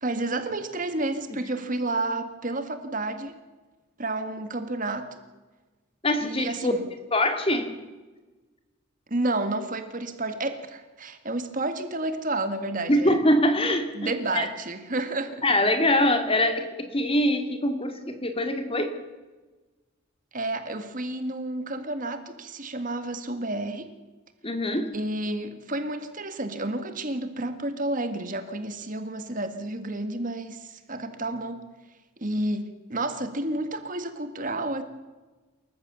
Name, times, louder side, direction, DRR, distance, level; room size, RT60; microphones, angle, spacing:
voice 1, 0.0-3.3 4.0-5.2 6.2-6.9 9.1-13.2 14.0-15.4 20.3-23.9 24.9-31.6 32.2-34.8, right 2 dB, 40° right, 9 dB, 1.8 m, -30 dB
voice 2, 6.0-6.7 7.1-7.8 12.9-14.5 15.4-19.0 24.4-24.9, left 1 dB, 25° left, 7 dB, 2.3 m, -24 dB
28.0 x 14.5 x 7.0 m, 1.2 s
head